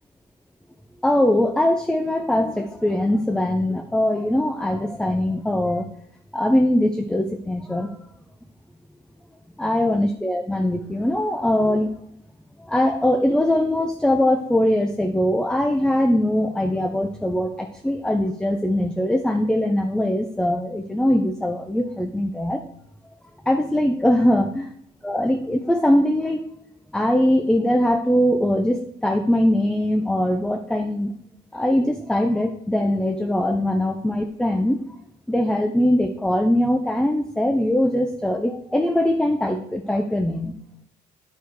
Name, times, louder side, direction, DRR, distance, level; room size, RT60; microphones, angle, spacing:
voice 1, 1.0-5.9 6.3-8.0 9.6-11.9 12.6-22.6 23.5-24.7 25.0-26.5 26.9-31.1 31.5-34.8 35.3-40.5, left 1 dB, 5° left, 5 dB, 0.5 m, -21 dB
9.2 x 4.6 x 4.6 m, 0.68 s
cardioid pair, 110°, 17 cm